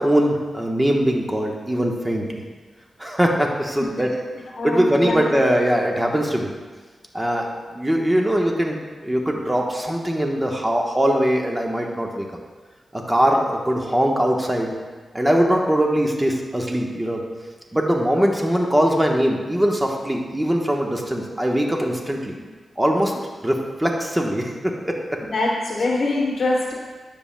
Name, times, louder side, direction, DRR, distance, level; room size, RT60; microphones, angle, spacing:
voice 1, 0.0-2.4 3.0-4.1 4.6-6.5 7.1-12.3 12.9-14.8 15.1-17.2 17.7-22.3 22.8-23.1 23.4-25.2, equal, 15° right, 0 dB, 1.1 m, -21 dB
voice 2, 4.6-5.2 25.3-26.7, left 2 dB, 55° left, -4 dB, 1.1 m, -23 dB
9.8 x 7.0 x 2.2 m, 1.4 s
cardioid pair, 60°, 0 cm